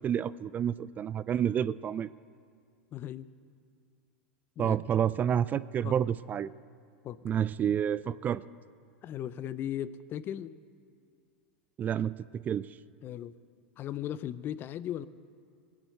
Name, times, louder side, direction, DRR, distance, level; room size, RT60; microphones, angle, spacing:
voice 1, 0.0-2.1 4.6-6.5 7.2-8.4 11.8-12.8, right 9 dB, 25° right, 17 dB, 0.3 m, -29 dB
voice 2, 2.9-3.3 4.6-4.8 5.8-5.9 7.0-7.2 9.0-10.6 13.0-13.3 13.8-15.1, left 11 dB, 35° left, 17 dB, 0.5 m, -37 dB
20.5 x 7.4 x 7.9 m, 2.3 s
hypercardioid pair, 95°, 6 cm